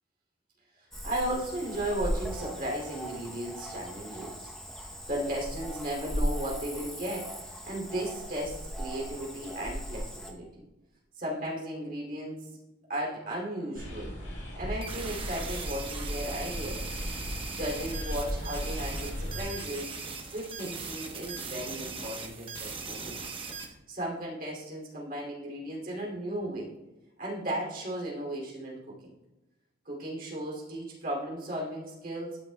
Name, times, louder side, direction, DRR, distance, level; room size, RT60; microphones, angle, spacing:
voice 1, 0.8-10.6 11.2-12.5 12.9-14.1 14.6-16.9 17.5-19.9 20.3-23.3 23.9-26.7 27.2-29.1 29.8-32.4, right 1 dB, 45° right, -3 dB, 2.6 m, -35 dB
Cricket / Frog, 0.9-10.3, equal, ahead, 0.7 m, -37 dB
sound 1, 13.7-19.4, equal, 70° left, 1.9 m, -37 dB
sound 2, 14.8-23.7, right 4 dB, 25° right, 0.9 m, -39 dB
12.0 x 6.1 x 2.2 m, 1.0 s
head